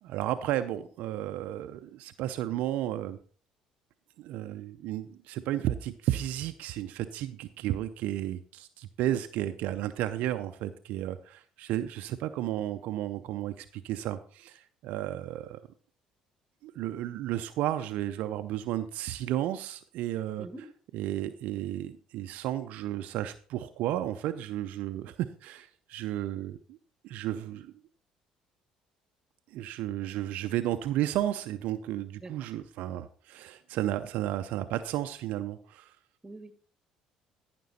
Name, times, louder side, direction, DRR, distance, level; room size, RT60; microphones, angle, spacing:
voice 1, 0.0-3.2 4.2-15.6 16.6-20.5 20.9-26.8 27.0-27.7 29.5-36.0, right 13 dB, 70° right, 9 dB, 0.5 m, -33 dB
voice 2, 20.4-20.7 32.2-32.5 36.2-36.5, right 2 dB, 20° right, 10 dB, 1.7 m, -44 dB
14.0 x 6.0 x 4.2 m, 0.44 s
hypercardioid pair, 60°, 3 cm